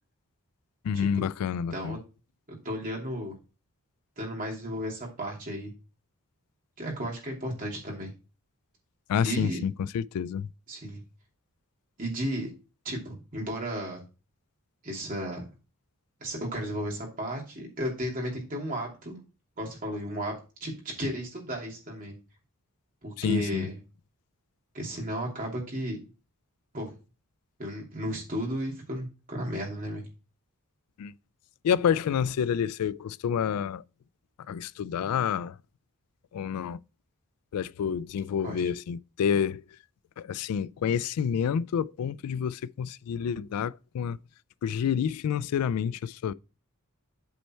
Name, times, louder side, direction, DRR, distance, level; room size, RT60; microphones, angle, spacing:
voice 1, 0.8-2.0 9.1-10.5 23.2-23.7 31.0-31.1 31.6-33.8 34.5-35.5 36.3-36.8 37.5-39.6 40.2-44.2 44.6-46.3, left 7 dB, 85° left, 0.3 m, -28 dB
voice 2, 2.5-3.3 4.2-5.7 6.8-8.1 9.2-9.6 10.7-11.0 12.0-12.5 12.8-14.0 14.8-15.5 16.2-19.2 19.6-20.3 20.6-22.1 23.0-23.8 24.7-26.0 26.7-26.9 27.6-30.0 38.4-38.6, equal, 40° right, 2.8 m, -34 dB
8.3 x 4.4 x 4.4 m
head